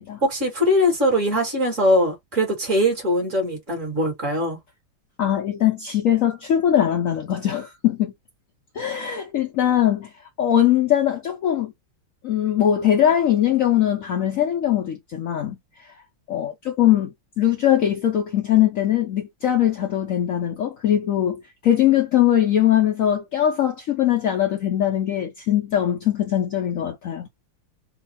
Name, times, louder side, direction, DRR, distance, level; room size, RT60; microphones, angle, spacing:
voice 1, 0.2-4.6, equal, 45° right, 2.0 m, -21 dB
voice 2, 5.2-8.1 8.7-10.1 10.4-11.7 12.2-15.6 16.3-27.3, left 11 dB, 65° left, 0.8 m, -21 dB
3.9 x 2.3 x 4.1 m
omnidirectional pair, 2.0 m